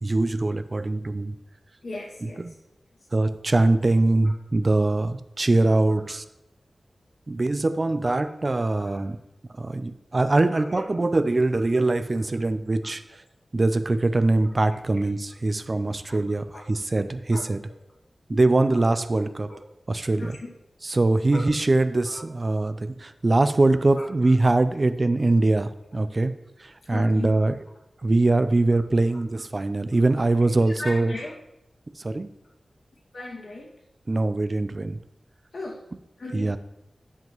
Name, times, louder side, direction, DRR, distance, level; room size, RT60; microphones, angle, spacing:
voice 1, 0.0-1.3 2.2-2.5 3.1-6.2 7.3-9.2 9.6-13.0 13.5-17.6 18.3-19.5 19.9-20.3 20.8-26.3 26.6-27.5 28.0-31.1 32.0-32.3 34.1-35.0 36.3-36.6, right 2 dB, 40° right, 12 dB, 0.4 m, -22 dB
voice 2, 1.8-2.6 5.9-6.0 8.0-8.3 8.8-9.0 10.5-10.8 11.7-11.9 16.1-16.2 16.5-16.6 17.3-17.5 18.3-18.4 18.7-18.8 19.5-19.6 20.2-20.5 21.3-21.5 22.0-22.2 24.0-24.1 26.9-27.5 28.7-28.8 30.4-31.3 33.1-33.7 35.5-35.8 36.2-36.6, left 2 dB, 70° left, -2 dB, 2.0 m, -37 dB
10.5 x 7.3 x 3.0 m, 0.87 s
wide cardioid pair, 90°, 0 cm